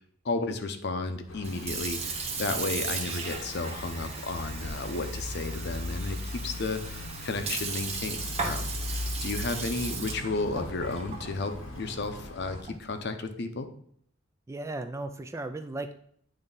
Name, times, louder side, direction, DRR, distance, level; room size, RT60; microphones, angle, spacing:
voice 1, 0.2-8.7 9.2-13.7, left 3 dB, 60° left, 7 dB, 0.7 m, -33 dB
sound 1, 1.3-12.6, left 1 dB, 80° left, 1.0 m, -39 dB
Sink (filling or washing) / Fill (with liquid), 1.3-12.9, right 4 dB, 30° right, 1.0 m, -37 dB
voice 2, 14.5-16.0, right 2 dB, 15° right, 8 dB, 0.3 m, -36 dB
8.9 x 3.2 x 4.0 m, 0.65 s
head